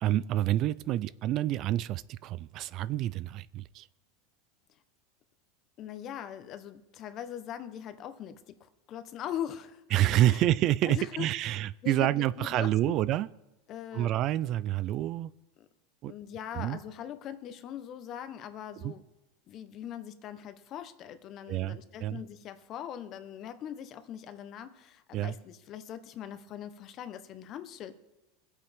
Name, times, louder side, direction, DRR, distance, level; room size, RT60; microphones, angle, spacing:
voice 1, 0.0-3.9 9.9-13.3 13.9-15.3 16.0-16.1 16.5-16.8 18.8-18.9 21.5-22.2 25.1-25.3, right 13 dB, 45° right, 19 dB, 0.3 m, -28 dB
voice 2, 5.8-10.4 10.9-11.3 11.8-12.9 13.7-14.2 15.6-15.7 16.1-19.0 19.5-27.9, left 10 dB, 40° left, 10 dB, 1.0 m, -41 dB
21.5 x 8.2 x 3.5 m, 0.95 s
supercardioid pair, 125°, 0 cm